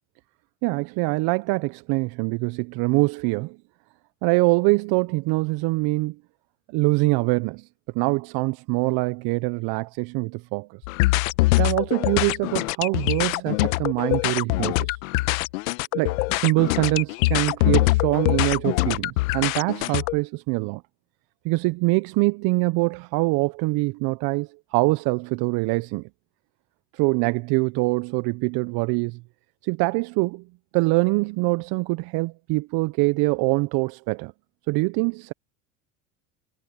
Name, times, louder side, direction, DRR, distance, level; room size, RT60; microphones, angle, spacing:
voice 1, 0.6-3.6 4.2-6.1 6.7-7.7 7.9-10.7 11.6-15.0 15.9-20.8 21.4-26.1 26.9-29.2 29.6-30.4 30.7-34.3 34.7-35.3, right 25 dB, 60° right, 1.1 m, -24 dB
sound 1, 10.8-20.1, left 21 dB, 70° left, 1.3 m, -23 dB
hypercardioid pair, 75°, 42 cm